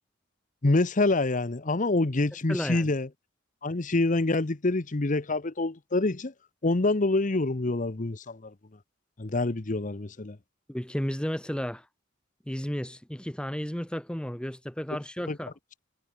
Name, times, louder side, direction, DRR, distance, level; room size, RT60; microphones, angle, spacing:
voice 1, 0.6-3.1 3.6-6.3 6.6-8.5 9.2-10.4 15.3-15.4, left 2 dB, 40° left, 0.9 m, -26 dB
voice 2, 2.5-2.9 10.7-11.9 12.5-15.5, equal, 5° left, 1.0 m, -33 dB
head